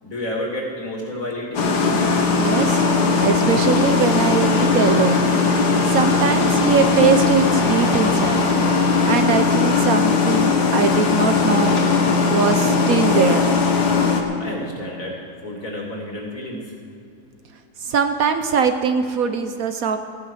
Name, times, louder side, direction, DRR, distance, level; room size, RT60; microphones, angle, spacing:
voice 1, 0.0-1.7 14.4-16.6, left 1 dB, 55° left, -2 dB, 3.0 m, -30 dB
sound 1, 1.5-14.2, left 4 dB, 75° left, 1.9 m, -18 dB
voice 2, 2.3-2.9 3.2-5.3 5.8-8.5 9.1-11.8 12.3-13.5 17.8-20.0, right 6 dB, 65° right, 8 dB, 1.1 m, -21 dB
15.0 x 10.0 x 6.3 m, 2.5 s
omnidirectional pair, 1.7 m